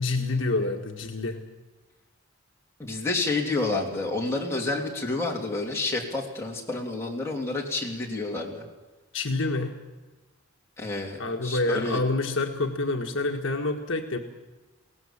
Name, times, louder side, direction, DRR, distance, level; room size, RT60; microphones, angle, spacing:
voice 1, 0.0-1.4 9.1-9.8 11.2-14.2, left 2 dB, 60° left, 2 dB, 1.5 m, -27 dB
voice 2, 2.8-8.6 10.8-12.0, left 3 dB, 10° left, -2 dB, 3.0 m, -29 dB
22.0 x 18.0 x 7.3 m, 1.2 s
head